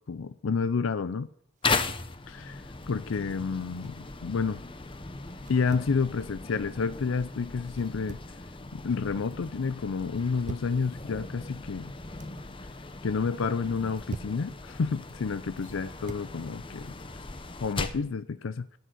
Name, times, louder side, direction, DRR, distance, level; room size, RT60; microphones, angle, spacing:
voice 1, 0.1-1.3 2.3-4.6 5.5-8.2 8.7-11.9 13.0-16.9 17.6-18.7, left 5 dB, 85° left, 0.5 m, -30 dB
sound 1, 1.6-18.1, left 3 dB, 25° left, 0.8 m, -38 dB
sound 2, 1.6-2.2 3.5-4.1 5.4-6.0 7.7-8.4 8.8-9.3 10.1-10.8 11.8-12.4 13.7-14.4 15.6-16.3, right 3 dB, 40° right, 0.4 m, -43 dB
13.5 x 6.4 x 7.8 m
head